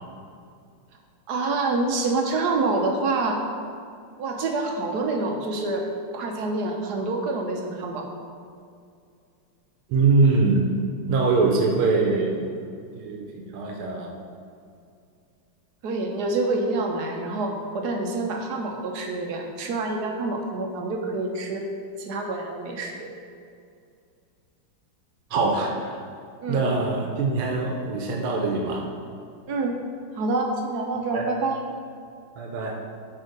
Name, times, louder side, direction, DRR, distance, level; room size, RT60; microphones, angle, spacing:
voice 1, 1.3-3.4 4.2-5.9 6.1-8.1 15.8-21.6 22.0-23.1 26.4-26.6 29.5-29.8 30.1-31.6, right 3 dB, 65° right, 2 dB, 1.1 m, -27 dB
voice 2, 9.9-10.7 11.1-12.5 13.0-14.1 25.3-26.0 26.5-28.9 31.1-31.3 32.4-32.8, right 3 dB, 85° right, 1 dB, 1.7 m, -23 dB
8.6 x 3.5 x 5.2 m, 2.4 s
omnidirectional pair, 2.3 m